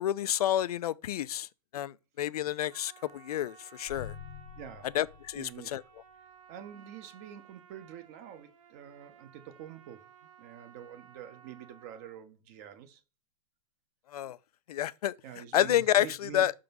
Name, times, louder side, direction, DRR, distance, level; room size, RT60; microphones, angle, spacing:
voice 1, 0.0-1.5 1.7-4.1 4.9-5.8 14.1-14.4 14.7-15.1 15.5-16.5, left 11 dB, 85° left, 0.5 m, -29 dB
Trumpet, 2.7-12.2, right 8 dB, 60° right, 1.0 m, -57 dB
sound 1, 3.9-6.1, left 9 dB, 50° left, 0.7 m, -47 dB
voice 2, 4.6-4.9 5.3-5.8 6.5-10.1 10.4-13.0 15.2-16.5, right 9 dB, 25° right, 0.7 m, -46 dB
5.8 x 3.8 x 5.3 m
supercardioid pair, 175°, 19 cm